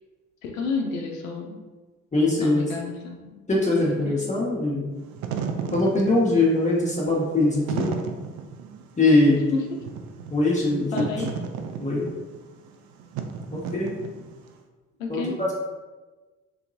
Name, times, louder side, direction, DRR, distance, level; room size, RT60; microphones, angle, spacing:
voice 1, 0.4-1.6 2.4-3.3 3.8-4.3 9.5-9.8 10.9-11.4 15.0-15.4, left 4 dB, 85° left, 1 dB, 0.5 m, -31 dB
voice 2, 2.1-2.7 3.5-4.9 5.7-7.9 9.0-9.4 10.3-11.0 11.8-12.0 13.5-13.9 15.1-15.5, left 2 dB, 20° left, -5 dB, 0.9 m, -22 dB
Wind / Fire, 5.0-14.5, right 6 dB, 65° right, 0.5 m, -34 dB
3.8 x 2.8 x 2.6 m, 1.2 s
figure-of-eight pair, 40°, 39 cm